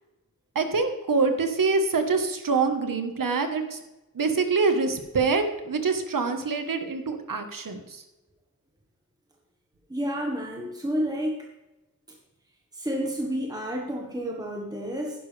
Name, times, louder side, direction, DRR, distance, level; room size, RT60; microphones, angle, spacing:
voice 1, 0.5-3.8 4.1-8.0, right 4 dB, 65° right, 7 dB, 1.4 m, -25 dB
voice 2, 9.9-11.4 12.7-15.3, equal, 10° right, 0 dB, 1.4 m, -30 dB
11.5 x 10.5 x 3.4 m, 1.0 s
wide cardioid pair, 105°, 35 cm